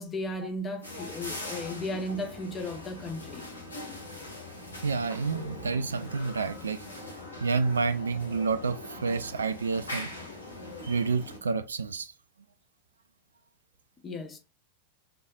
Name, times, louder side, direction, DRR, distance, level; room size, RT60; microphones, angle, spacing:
voice 1, 0.0-3.5 14.0-14.4, left 1 dB, 20° left, 1.0 m, -35 dB
sound 1, 0.8-11.4, left 2 dB, 75° left, 1.5 m, -42 dB
voice 2, 4.8-6.8 7.4-10.1 10.9-12.1, right 4 dB, 70° right, 0.3 m, -29 dB
5.5 x 3.6 x 2.4 m
figure-of-eight pair, 90°, 0 cm